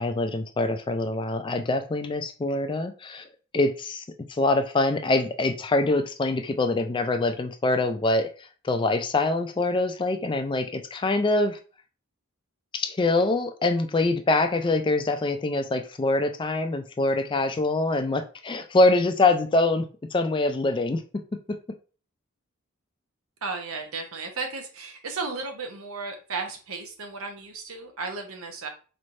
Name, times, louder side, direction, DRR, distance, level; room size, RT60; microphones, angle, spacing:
voice 1, 0.0-3.2 3.5-4.0 4.3-8.3 8.6-11.6 12.7-19.9 20.1-21.0, left 2 dB, 25° left, 8 dB, 0.3 m, -24 dB
voice 2, 23.4-28.7, right 4 dB, 85° right, 4 dB, 0.9 m, -34 dB
4.3 x 3.2 x 2.6 m, 0.36 s
head